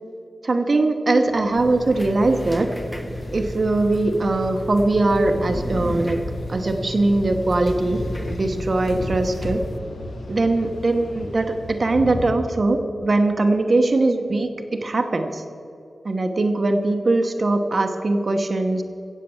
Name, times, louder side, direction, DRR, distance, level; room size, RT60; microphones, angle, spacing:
voice 1, 0.4-2.7 3.3-6.2 6.5-8.0 8.3-9.6 10.3-15.4 16.0-18.8, right 2 dB, 50° right, 5 dB, 1.0 m, -21 dB
sound 1, 1.3-12.3, left 1 dB, 85° left, 1.7 m, -35 dB
sound 2, 1.6-9.8, left 1 dB, 5° left, 1.0 m, -33 dB
16.5 x 7.5 x 7.0 m, 2.7 s
wide cardioid pair, 75°, 0 cm